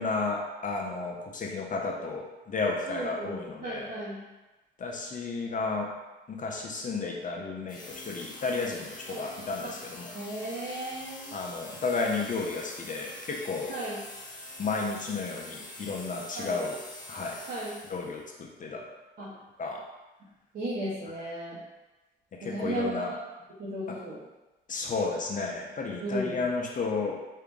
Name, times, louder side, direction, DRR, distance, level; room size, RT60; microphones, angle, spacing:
voice 1, 0.0-3.9 4.8-5.9 6.3-10.1 11.3-13.7 14.6-16.8 17.1-17.4 17.9-18.8 19.6-19.8 22.4-23.1 24.7-27.2, left 4 dB, 40° left, 0 dB, 0.7 m, -32 dB
voice 2, 2.9-4.2 9.1-9.2 9.6-9.7 10.1-11.4 13.7-14.0 16.3-16.6 17.5-17.8 19.2-19.3 20.5-21.6 22.4-23.1 23.6-24.2 26.0-26.4, right 1 dB, 55° right, -10 dB, 1.4 m, -35 dB
sound 1, 7.7-18.2, left 2 dB, 20° left, 1.1 m, -45 dB
4.8 x 2.9 x 3.6 m, 1.1 s
cardioid pair, 90°, 20 cm